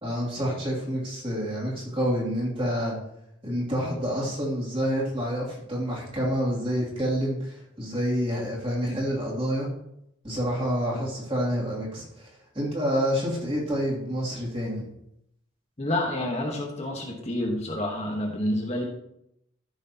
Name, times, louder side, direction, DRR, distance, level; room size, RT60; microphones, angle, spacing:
voice 1, 0.0-3.0 3.4-9.7 10.2-12.3 12.5-14.9, equal, 25° right, -4 dB, 2.7 m, -28 dB
voice 2, 15.8-18.8, left 1 dB, 30° left, 0 dB, 1.3 m, -28 dB
14.0 x 6.3 x 2.9 m, 0.79 s
head